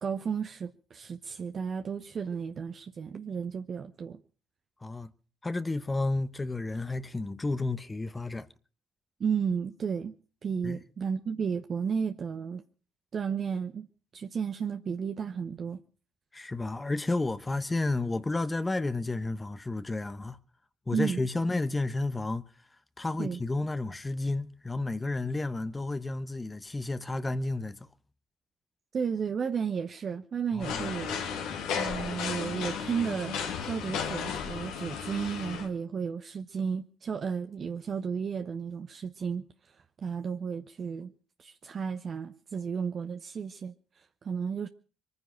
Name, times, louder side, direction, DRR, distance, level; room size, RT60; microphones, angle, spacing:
voice 1, 0.0-4.2 9.2-10.1 10.4-12.6 13.1-13.9 14.1-15.8 20.9-21.2 23.2-23.4 28.9-31.2 31.7-39.4 39.7-41.1 41.4-44.7, right 6 dB, 50° right, 0.9 m, -33 dB
voice 2, 5.4-8.5 10.6-10.8 16.3-20.4 20.9-22.4 23.0-27.8 30.5-30.8, left 2 dB, 20° left, 1.0 m, -31 dB
sound 1, 30.6-35.7, left 7 dB, 75° left, 2.4 m, -34 dB
23.5 x 9.7 x 5.8 m
hypercardioid pair, 60°, 0 cm